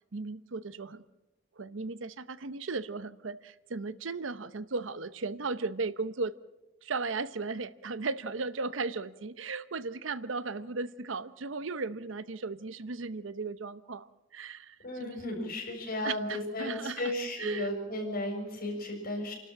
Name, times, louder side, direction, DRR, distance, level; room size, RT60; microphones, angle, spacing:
voice 1, 0.1-1.0 1.6-6.3 6.8-14.1 14.3-15.2 16.0-17.1 17.4-17.7, right 4 dB, 75° right, 15 dB, 0.8 m, -36 dB
voice 2, 14.8-19.3, left 1 dB, 50° left, 0 dB, 7.0 m, -34 dB
28.5 x 12.5 x 7.4 m, 1.0 s
head